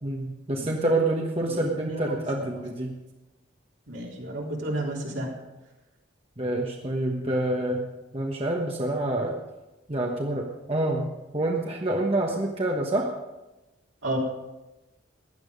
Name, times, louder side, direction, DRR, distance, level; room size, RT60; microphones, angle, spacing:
voice 1, 0.0-2.9 6.4-7.9 8.1-9.4 9.9-13.1, right 1 dB, 30° right, 0 dB, 1.2 m, -27 dB
voice 2, 1.5-2.5 3.9-5.3 14.0-14.2, right 1 dB, 70° right, -3 dB, 3.8 m, -32 dB
16.0 x 10.5 x 5.2 m, 1.0 s
head